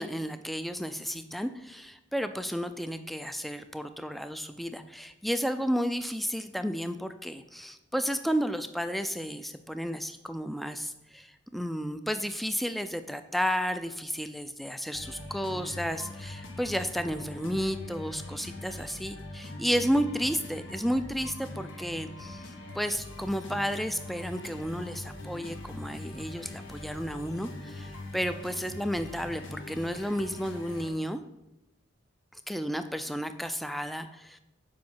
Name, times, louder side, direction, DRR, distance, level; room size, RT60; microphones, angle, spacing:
voice 1, 0.0-31.2 32.3-34.4, equal, ahead, 9 dB, 0.4 m, -32 dB
sound 1, 14.9-30.9, left 2 dB, 80° left, 1.9 m, -42 dB
7.6 x 5.2 x 7.3 m, 0.94 s
head